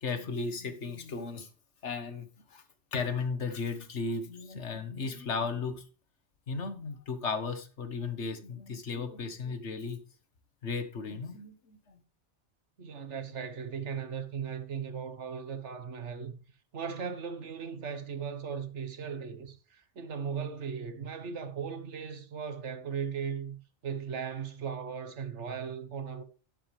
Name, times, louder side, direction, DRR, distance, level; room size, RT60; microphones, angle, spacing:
voice 1, 0.0-1.5 1.8-2.6 2.9-5.8 6.5-10.0 10.6-12.0, left 4 dB, 80° left, 1.6 m, -35 dB
voice 2, 12.8-16.4 16.7-26.2, right 6 dB, 80° right, 1.5 m, -37 dB
11.0 x 10.5 x 3.3 m
omnidirectional pair, 1.2 m